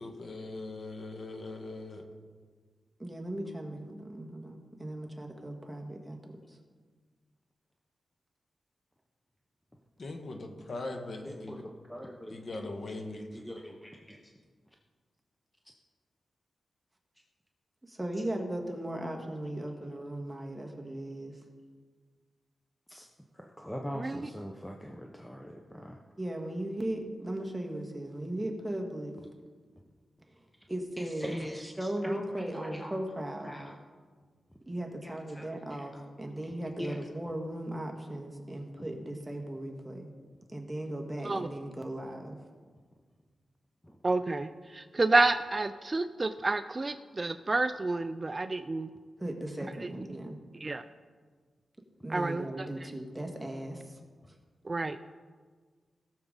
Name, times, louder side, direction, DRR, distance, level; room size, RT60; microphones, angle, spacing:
voice 1, 0.0-2.0 10.0-11.6 12.3-13.3, left 2 dB, 55° left, 4 dB, 1.4 m, -40 dB
voice 2, 3.0-6.6 17.8-21.4 26.2-29.2 30.3-30.4 30.7-33.6 34.7-40.1 40.5-42.4 49.2-50.4 52.0-54.0, right 1 dB, 10° right, 1 dB, 1.6 m, -37 dB
voice 3, 11.2-12.4 13.3-14.3 18.1-18.2 22.9-23.1 23.3-26.0 29.2-29.3 31.0-33.8 35.0-36.0 36.5-37.0 43.8-44.0 49.6-49.7, equal, 5° left, 1 dB, 0.8 m, -43 dB
voice 4, 44.0-48.9 49.8-49.9 50.6-50.8 52.1-52.7 54.6-55.0, right 3 dB, 30° right, 10 dB, 0.3 m, -29 dB
17.0 x 6.9 x 3.9 m, 1.5 s
wide cardioid pair, 95°, 0 cm